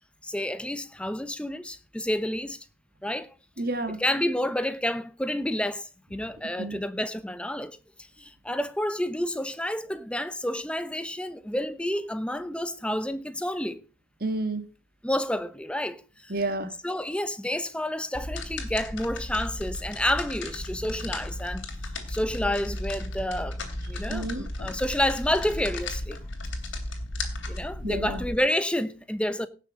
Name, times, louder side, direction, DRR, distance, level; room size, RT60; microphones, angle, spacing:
voice 1, 0.2-2.7 3.0-3.3 3.9-7.8 8.2-13.8 15.0-16.3 16.8-26.2 27.5-29.5, left 1 dB, 5° left, 0.8 m, -29 dB
voice 2, 3.6-4.0 6.6-6.8 14.2-14.6 16.3-16.7 24.1-24.5 27.8-28.2, right 2 dB, 45° right, 1.7 m, -30 dB
sound 1, 18.1-28.4, left 1 dB, 60° left, 2.9 m, -35 dB
17.5 x 6.7 x 5.2 m
head